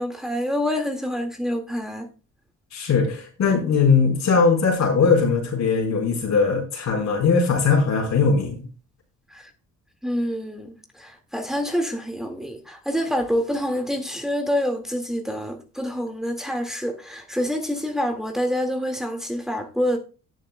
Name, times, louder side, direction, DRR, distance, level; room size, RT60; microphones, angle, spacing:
voice 1, 0.0-2.1 9.3-9.5 10.0-20.0, equal, ahead, 1.9 m, -27 dB
voice 2, 2.7-8.6, left 5 dB, 65° left, 4.2 m, -20 dB
18.0 x 6.5 x 2.2 m
cardioid pair, 90°, 30 cm